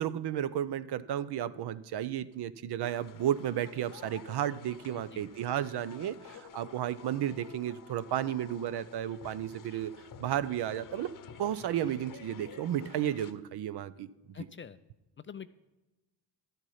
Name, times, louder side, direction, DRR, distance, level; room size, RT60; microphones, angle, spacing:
voice 1, 0.0-9.9 10.2-11.1 11.4-14.1, right 11 dB, 60° right, 15 dB, 0.7 m, -33 dB
sound 1, 2.8-13.3, left 8 dB, 45° left, 0.9 m, -51 dB
voice 2, 14.3-14.8 15.2-15.5, left 7 dB, 30° left, 13 dB, 0.4 m, -44 dB
12.0 x 8.0 x 5.7 m, 1.1 s
supercardioid pair, 70°, 45 cm